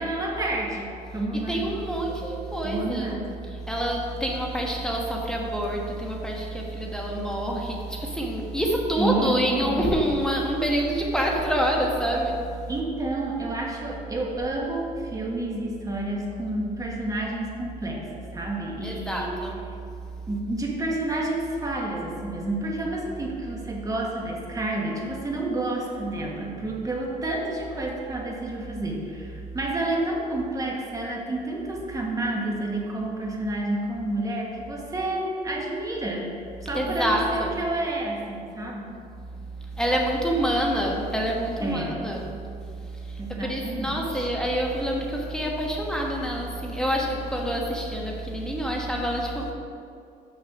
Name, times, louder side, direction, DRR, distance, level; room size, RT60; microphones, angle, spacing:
voice 1, 0.0-1.7 2.6-3.2 9.0-9.9 12.7-19.4 20.3-39.0 41.6-42.0 43.2-44.3, right 2 dB, 20° right, -2 dB, 1.7 m, -30 dB
voice 2, 1.3-3.2 3.4-12.7 18.8-19.5 36.7-37.5 39.6-42.4 42.6-49.5, right 1 dB, 5° left, -1 dB, 1.3 m, -27 dB
6.7 x 6.6 x 6.0 m, 2.4 s
cardioid pair, 110°, 17 cm